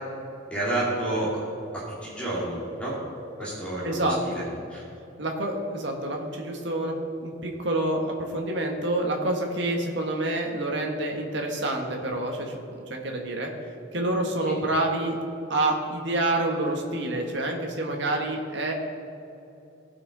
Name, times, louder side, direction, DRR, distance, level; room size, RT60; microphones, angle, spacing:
voice 1, 0.5-1.3 1.7-2.9 3.4-4.4 4.7-4.8, right 1 dB, 5° left, -8 dB, 2.4 m, -29 dB
voice 2, 3.8-4.4 5.2-6.9 7.2-13.5 13.9-15.2 15.5-18.7, right 1 dB, 65° right, 1 dB, 1.5 m, -27 dB
17.5 x 6.0 x 3.9 m, 2.9 s
head